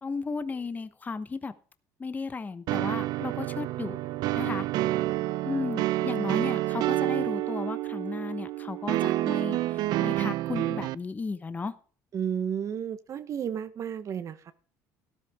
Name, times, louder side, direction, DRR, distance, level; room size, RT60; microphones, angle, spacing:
voice 1, 0.0-1.5 2.0-4.0 4.3-4.7 5.4-11.7, left 4 dB, 20° left, 1.0 m, -34 dB
sound 1, 2.7-10.9, right 15 dB, 70° right, 0.5 m, -28 dB
voice 2, 12.1-14.5, right 8 dB, 45° right, 0.9 m, -32 dB
13.0 x 13.0 x 3.6 m
cardioid pair, 105°, 7 cm